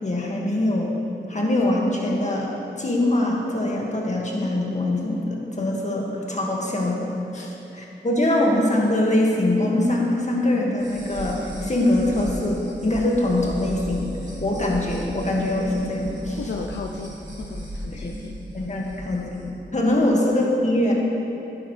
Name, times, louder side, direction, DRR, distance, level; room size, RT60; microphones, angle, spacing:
voice 1, 0.0-0.9 1.3-2.5 2.8-14.1 14.4-16.4 17.9-18.1 18.5-19.5 19.7-20.9, left 1 dB, 40° left, -2 dB, 2.0 m, -23 dB
voice 2, 7.3-7.9 16.4-18.7 20.0-20.1, left 4 dB, 75° left, 2 dB, 0.5 m, -36 dB
sound 1, 10.8-19.4, right 1 dB, 40° right, 2.3 m, -35 dB
11.5 x 9.7 x 3.3 m, 3.0 s
cardioid pair, 45°, 18 cm